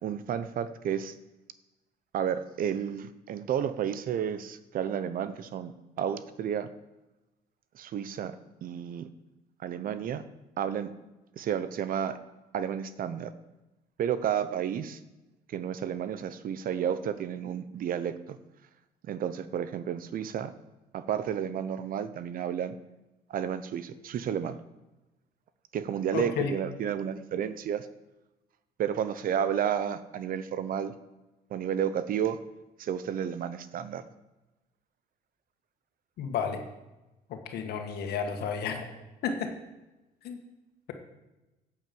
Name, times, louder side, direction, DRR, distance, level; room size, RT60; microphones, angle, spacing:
voice 1, 0.0-1.1 2.1-6.7 7.7-8.4 8.6-9.1 9.6-10.2 10.6-10.9 11.4-12.2 12.5-13.3 14.0-15.0 15.5-18.4 19.1-20.5 20.9-22.8 23.3-24.6 25.7-27.9 28.8-30.9 31.5-32.4 32.8-34.0, right 8 dB, 55° right, 13 dB, 0.9 m, -31 dB
voice 2, 26.1-26.5 36.2-36.6 37.3-38.9 39.2-39.5 40.2-40.4, left 6 dB, 70° left, 4 dB, 2.0 m, -32 dB
9.0 x 8.2 x 7.7 m, 1.0 s
cardioid pair, 110°, 17 cm